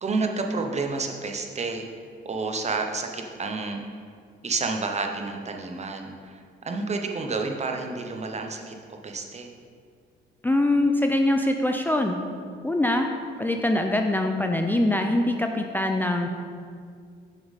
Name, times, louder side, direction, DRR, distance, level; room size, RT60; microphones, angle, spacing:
voice 1, 0.0-1.9 2.2-3.8 4.4-8.7 9.0-9.5, right 3 dB, 35° right, 4 dB, 0.9 m, -30 dB
voice 2, 10.4-12.2 12.6-13.1 13.4-16.3, left 1 dB, 10° left, 3 dB, 0.5 m, -23 dB
7.3 x 6.7 x 4.1 m, 2.2 s
cardioid pair, 90°, 20 cm